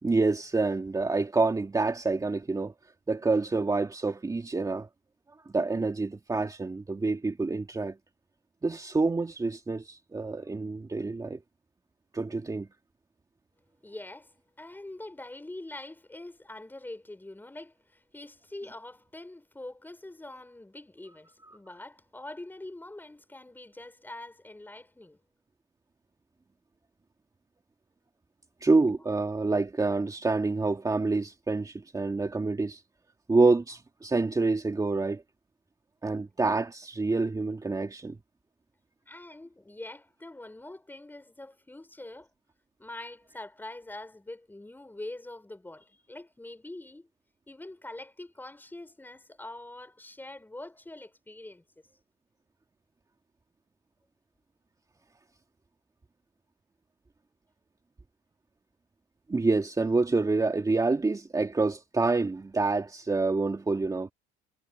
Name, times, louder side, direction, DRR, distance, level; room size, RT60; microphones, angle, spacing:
voice 1, 0.0-2.7 3.1-4.9 5.5-8.0 8.6-11.4 12.1-12.7 28.6-32.8 33.3-35.2 36.0-38.2 59.3-64.1, right 3 dB, 15° right, 2.4 m, -27 dB
voice 2, 13.8-25.2 39.1-42.3 42.8-47.1 47.5-51.6, left 2 dB, 10° left, 5.1 m, -44 dB
supercardioid pair, 90°, 21 cm